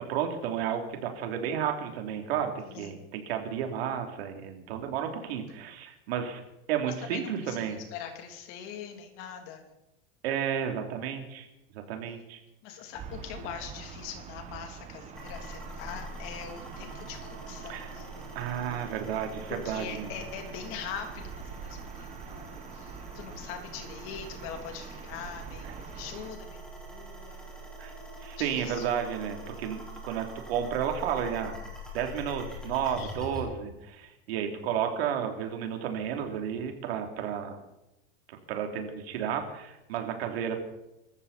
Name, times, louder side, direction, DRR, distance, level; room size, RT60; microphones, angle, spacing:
voice 1, 0.1-6.4 6.7-7.8 10.2-11.5 11.9-12.4 17.7-18.0 18.3-20.1 25.6-25.7 27.8-31.6 31.9-37.6 38.3-40.6, right 8 dB, 80° right, 4 dB, 3.2 m, -32 dB
voice 2, 7.1-9.7 12.6-18.2 19.5-27.6 28.4-28.8 32.8-33.4, left 7 dB, 45° left, 4 dB, 3.0 m, -42 dB
Gull seagull / Ocean, 12.9-26.3, right 6 dB, 20° right, 1.3 m, -45 dB
sound 1, 15.1-33.4, right 1 dB, ahead, 3.9 m, -44 dB
24.0 x 14.0 x 4.3 m, 0.93 s
supercardioid pair, 170°, 30 cm